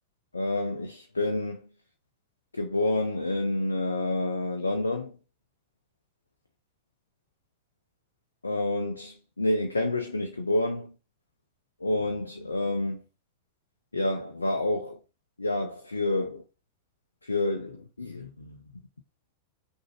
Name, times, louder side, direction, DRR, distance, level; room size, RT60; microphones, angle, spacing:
voice 1, 0.3-1.6 2.5-5.1 8.4-10.9 11.8-13.0 13.9-15.0 15.4-16.4 17.2-18.6, left 2 dB, 80° left, 0.6 m, -28 dB
6.1 x 2.7 x 3.1 m
figure-of-eight pair, 90°, 0 cm